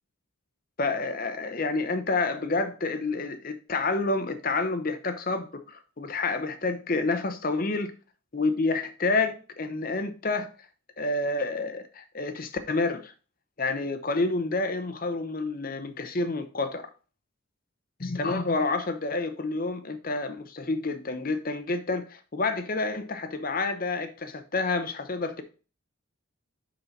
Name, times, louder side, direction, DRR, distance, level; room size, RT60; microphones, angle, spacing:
voice 1, 0.8-7.9 8.3-10.5 11.0-13.1 13.6-16.9 18.0-25.4, left 3 dB, 40° left, 0.8 m, -29 dB
5.8 x 5.6 x 3.9 m
head